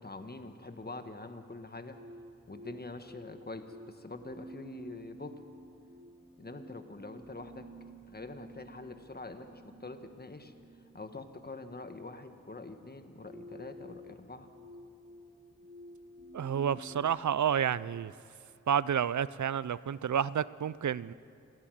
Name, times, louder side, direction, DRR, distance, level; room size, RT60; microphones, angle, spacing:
voice 1, 0.0-2.0 2.5-5.4 6.4-7.7 8.1-10.5 10.9-14.5, left 3 dB, 35° left, 7 dB, 1.5 m, -45 dB
sound 1, 1.9-17.1, right 1 dB, 40° right, 7.0 m, -52 dB
voice 2, 16.3-18.1 18.7-21.1, right 8 dB, 80° right, 19 dB, 0.5 m, -30 dB
29.5 x 11.5 x 9.2 m, 2.5 s
wide cardioid pair, 65°, 29 cm